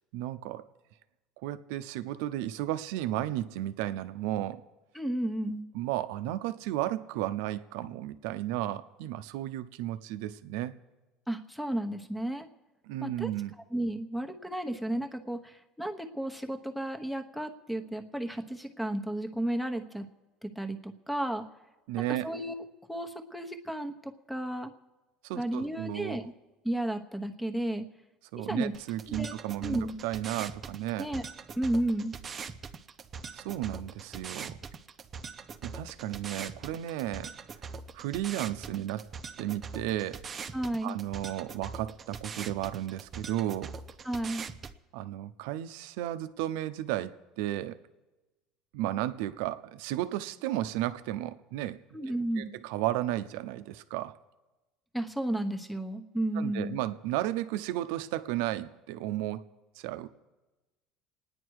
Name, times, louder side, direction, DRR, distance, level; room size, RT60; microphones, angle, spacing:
voice 1, 0.1-0.6 1.4-4.6 5.7-10.7 12.8-13.5 21.9-22.3 25.2-26.2 28.3-31.1 33.3-34.6 35.6-37.3 37.9-39.1 39.4-40.2 40.8-43.7 44.9-47.8 48.7-51.8 52.4-54.2 56.3-59.5 59.8-60.1, right 14 dB, 85° right, 11 dB, 0.7 m, -33 dB
voice 2, 4.9-5.7 11.3-12.5 13.0-13.3 13.7-20.0 20.4-21.4 22.1-24.7 25.3-26.3 26.6-27.8 28.4-28.7 29.1-29.3 29.6-29.9 31.0-31.2 31.6-32.2 40.5-41.0 44.0-44.4 51.9-52.5 54.9-56.8, right 1 dB, 5° left, 7 dB, 1.1 m, -33 dB
sound 1, 28.7-44.7, right 5 dB, 30° right, 0.8 m, -42 dB
29.0 x 9.8 x 4.8 m, 1.1 s
cardioid pair, 135°, 0 cm